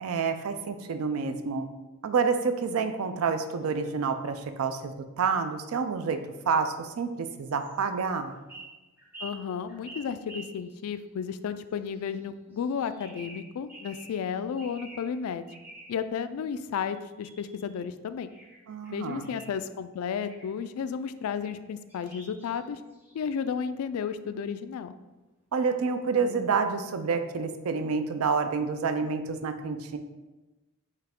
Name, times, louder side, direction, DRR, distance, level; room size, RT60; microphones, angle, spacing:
voice 1, 0.0-1.7 2.0-6.2 6.5-8.4 18.7-19.3 25.5-30.0, right 5 dB, 80° right, 8 dB, 0.4 m, -28 dB
sound 1, 7.4-7.8 8.3-11.0 11.8-12.3 12.5-14.2 14.6-15.1 15.5-16.0 16.8-17.8 18.3-19.6 20.2-20.5 21.4-21.6 21.9-23.4, right 2 dB, 10° right, 0.8 m, -48 dB
voice 2, 9.2-15.5 15.9-18.3 18.9-22.8 23.1-24.9, left 7 dB, 85° left, 12 dB, 0.3 m, -33 dB
4.7 x 3.2 x 3.5 m, 1.1 s
head